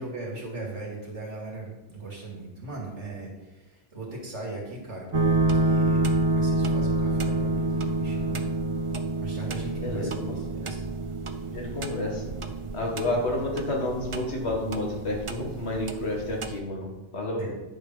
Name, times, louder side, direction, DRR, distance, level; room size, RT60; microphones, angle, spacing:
voice 1, 0.0-3.6 3.9-5.1 5.5-8.4 9.2-10.8 17.4-17.5, right 2 dB, 75° right, -3 dB, 2.8 m, -38 dB
sound 1, 5.1-16.6, right 2 dB, 40° right, 0.5 m, -28 dB
voice 2, 9.8-10.4 11.5-12.3 12.7-17.4, left 1 dB, 65° left, 0 dB, 2.0 m, -30 dB
10.5 x 5.1 x 5.6 m, 1.1 s
omnidirectional pair, 1.2 m